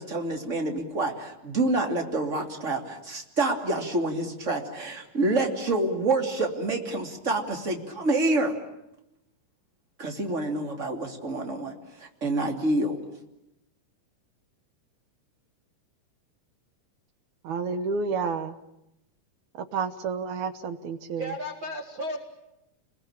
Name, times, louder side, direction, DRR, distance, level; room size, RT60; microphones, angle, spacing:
voice 1, 0.0-8.6 10.0-13.0, right 2 dB, 20° right, 3 dB, 2.8 m, -27 dB
voice 2, 17.4-18.5 19.7-21.3, right 5 dB, 65° right, 10 dB, 2.3 m, -30 dB
voice 3, 21.1-22.2, equal, 40° right, 2 dB, 2.8 m, -34 dB
30.0 x 21.5 x 8.9 m, 0.87 s
omnidirectional pair, 4.0 m